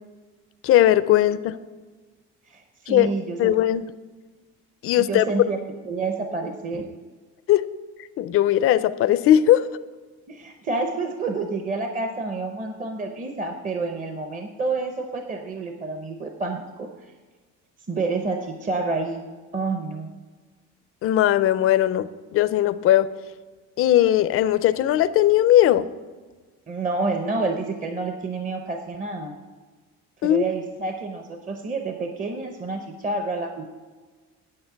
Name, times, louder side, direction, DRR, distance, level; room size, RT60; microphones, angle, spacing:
voice 1, 0.6-1.5 2.9-3.1 3.4-3.8 4.8-5.2 7.5-7.6 8.2-9.7 21.0-23.1 23.8-25.9 30.2-30.4, left 12 dB, 50° left, 14 dB, 0.4 m, -19 dB
voice 2, 2.5-3.5 5.0-6.9 10.3-16.9 17.9-19.2 19.5-20.1 26.7-29.3 30.2-33.6, right 3 dB, 25° right, 4 dB, 0.7 m, -29 dB
9.7 x 8.2 x 5.7 m, 1.3 s
cardioid pair, 155°, 30 cm